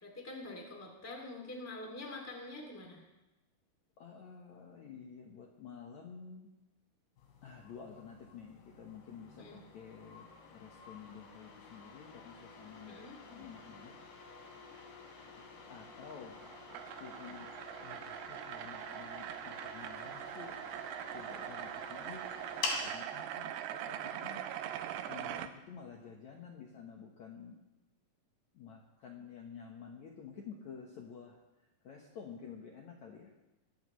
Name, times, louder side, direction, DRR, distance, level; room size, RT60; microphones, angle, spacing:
voice 1, 0.0-3.0 9.4-9.6 12.9-13.2, left 2 dB, 5° left, 0 dB, 1.7 m, -46 dB
voice 2, 4.0-6.5 7.4-13.9 15.7-16.5 17.0-17.5 17.8-20.6 21.1-22.3 22.8-24.4 25.1-27.6 28.5-31.4 31.8-33.3, left 6 dB, 60° left, 0 dB, 2.0 m, -50 dB
sound 1, 7.2-22.9, left 4 dB, 90° left, 4.5 m, -48 dB
sound 2, 16.0-25.5, right 11 dB, 80° right, 2.7 m, -42 dB
21.5 x 14.0 x 3.2 m, 1.0 s
omnidirectional pair, 4.6 m